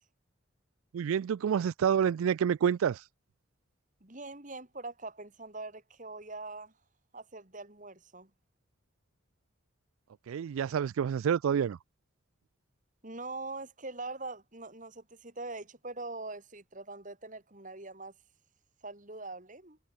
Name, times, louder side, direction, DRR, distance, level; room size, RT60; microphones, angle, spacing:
voice 1, 0.9-3.0 10.3-11.8, right 8 dB, 80° right, 0.3 m, -28 dB
voice 2, 4.0-6.7 7.1-8.3 13.0-18.1 18.8-19.8, right 3 dB, 35° right, 2.6 m, -43 dB
head